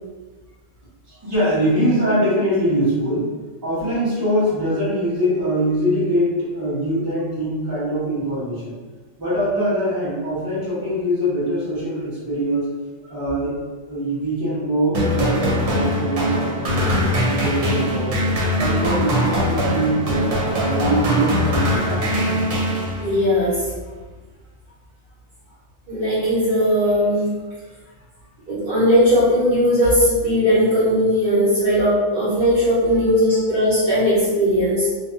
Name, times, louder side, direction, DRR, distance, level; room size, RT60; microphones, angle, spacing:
voice 1, 1.1-3.3 3.6-8.8 9.2-12.7 13.1-13.5 13.9-18.2 18.5-20.1 20.5-22.1 32.9-33.0, equal, 20° right, -12 dB, 1.1 m, -23 dB
sound 1, 14.9-23.3, equal, 80° right, 1.1 m, -21 dB
voice 2, 23.0-23.6 25.9-27.3 28.5-34.9, equal, 45° right, -12 dB, 1.3 m, -18 dB
2.6 x 2.2 x 2.6 m, 1.3 s
omnidirectional pair, 1.4 m